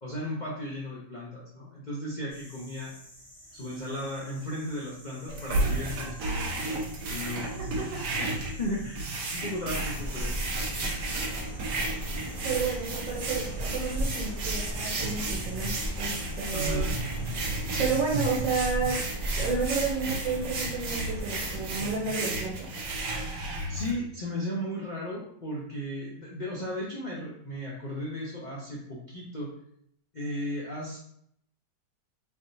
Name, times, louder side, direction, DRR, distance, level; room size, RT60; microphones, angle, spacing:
voice 1, 0.0-2.9 3.5-7.8 8.2-10.3 16.5-17.0 23.4-29.5 30.1-31.0, left 1 dB, 65° left, -5 dB, 0.4 m, -35 dB
sound 1, 2.3-18.2, equal, 20° left, 1.4 m, -51 dB
sound 2, 5.3-23.9, right 2 dB, 60° right, 1.1 m, -33 dB
voice 2, 7.6-8.0 9.3-9.4 12.4-15.7 16.0-16.9 17.8-19.0 19.3-22.7, right 5 dB, 80° right, -5 dB, 1.7 m, -31 dB
sound 3, 9.8-22.0, equal, 35° left, 0.8 m, -36 dB
3.6 x 3.4 x 2.6 m, 0.69 s
omnidirectional pair, 1.9 m